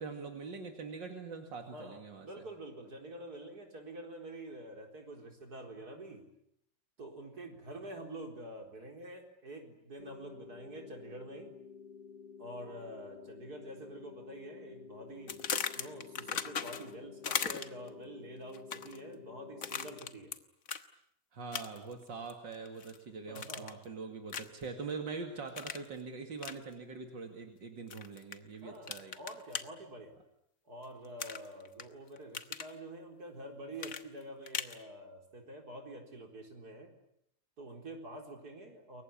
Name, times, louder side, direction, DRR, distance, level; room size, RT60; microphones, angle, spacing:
voice 1, 0.0-2.4 21.3-29.1, right 4 dB, 85° right, 4 dB, 3.0 m, -43 dB
voice 2, 1.6-6.2 7.0-11.5 12.4-15.4 15.7-20.3 23.3-23.8 28.6-30.2 30.6-36.9 37.6-39.0, right 1 dB, 55° right, 3 dB, 4.8 m, -47 dB
sound 1, 10.0-20.0, left 6 dB, 80° left, 2.6 m, -51 dB
sound 2, 15.3-16.9 17.2-17.9 18.5-19.0 19.6-20.4 20.7-20.8 21.5-21.9 22.3-23.0 23.3-23.8 24.3-24.6 25.6-25.9 26.4-26.6 27.9-28.4 28.9-29.6 31.2-31.8 32.2-32.7 33.8-34.8, left 6 dB, 50° left, 1.6 m, -38 dB
29.0 x 23.0 x 8.7 m, 0.73 s
omnidirectional pair, 1.9 m